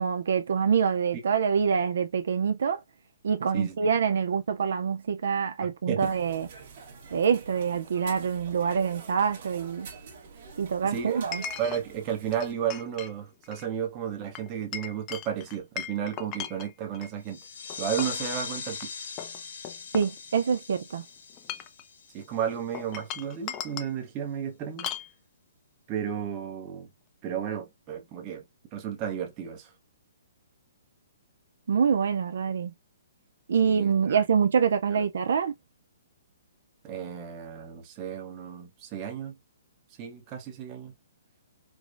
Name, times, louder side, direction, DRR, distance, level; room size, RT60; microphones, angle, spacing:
voice 1, 0.0-2.8 3.2-6.5 7.1-9.9 10.6-11.4 19.9-21.0 31.7-32.7 33.5-35.5, right 6 dB, 60° right, 0.4 m, -25 dB
voice 2, 5.6-6.1 10.9-11.2 11.6-17.4 17.8-18.9 22.1-24.9 25.9-26.9 27.2-28.4 28.7-29.7 33.6-34.2 34.9-35.0 36.8-39.4 40.0-40.9, right 9 dB, 20° right, 0.7 m, -33 dB
sound 1, 6.0-12.5, right 5 dB, 40° right, 1.2 m, -46 dB
Chink clink, 7.8-7.9 11.3-11.8 12.3-13.1 13.4-13.7 14.3-17.1 17.7-18.2 18.7-18.8 19.2-20.6 21.3-21.8 22.7-23.9 24.8-25.1, left 9 dB, 20° left, 0.3 m, -38 dB
sound 2, 17.2-22.6, left 6 dB, 55° left, 1.1 m, -40 dB
4.7 x 2.1 x 2.5 m
hypercardioid pair, 175°, 0 cm